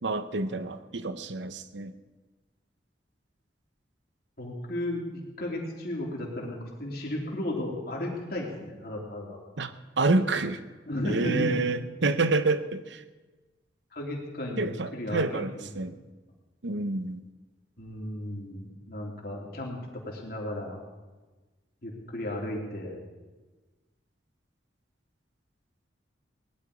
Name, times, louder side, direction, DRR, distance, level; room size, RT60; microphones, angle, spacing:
voice 1, 0.0-1.9 9.6-10.6 11.0-13.0 14.6-16.0 16.6-17.2, right 3 dB, 80° right, 12 dB, 0.8 m, -28 dB
voice 2, 4.4-9.4 10.9-11.7 13.9-15.7 17.8-20.8 21.8-23.0, left 1 dB, 55° left, -2 dB, 3.1 m, -34 dB
18.5 x 11.5 x 4.9 m, 1.2 s
head